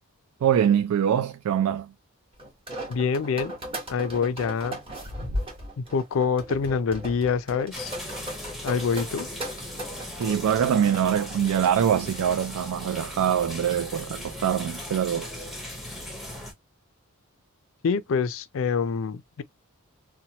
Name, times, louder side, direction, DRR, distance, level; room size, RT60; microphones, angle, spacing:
voice 1, 0.4-1.9 10.2-15.3, right 9 dB, 85° right, 0.3 m, -24 dB
sound 1, 2.4-12.5, equal, 25° right, 1.1 m, -37 dB
voice 2, 2.9-3.5 3.9-4.8 5.8-7.9 8.6-9.3 17.8-19.4, left 5 dB, 60° left, 0.4 m, -26 dB
sound 2, 7.7-16.5, left 1 dB, ahead, 0.7 m, -38 dB
2.8 x 2.1 x 2.7 m
head